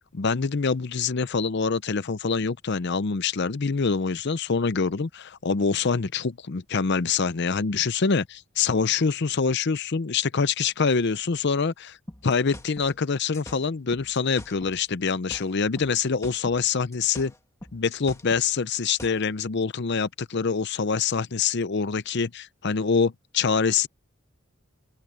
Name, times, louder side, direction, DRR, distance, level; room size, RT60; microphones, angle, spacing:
voice 1, 0.1-12.0 12.2-17.3 17.7-23.9, left 5 dB, 55° left, 0.6 m, -25 dB
sound 1, 12.1-14.8 15.1-16.7 16.9-19.3, left 1 dB, 15° left, 1.6 m, -44 dB
open air
head